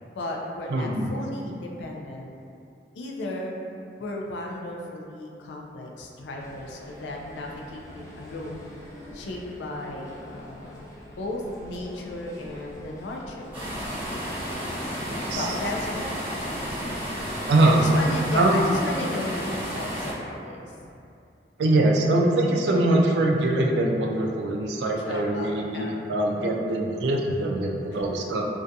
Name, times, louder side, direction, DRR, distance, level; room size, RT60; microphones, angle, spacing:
voice 1, 0.0-2.3 2.9-3.5 3.9-8.6 9.1-10.8 11.1-13.6 15.3-16.4 16.8-17.3 17.6-20.7 25.1-26.2 27.9-28.1, left 1 dB, 90° left, 0 dB, 0.4 m, -35 dB
voice 2, 0.7-1.1 15.1-15.6 17.5-17.8 18.3-18.6 21.6-28.5, right 1 dB, 75° right, 0 dB, 0.3 m, -23 dB
sound 1, 6.4-18.1, equal, 20° left, 0.4 m, -46 dB
sound 2, 13.5-20.1, equal, 10° right, 0.8 m, -32 dB
2.3 x 2.2 x 2.6 m, 2.5 s
head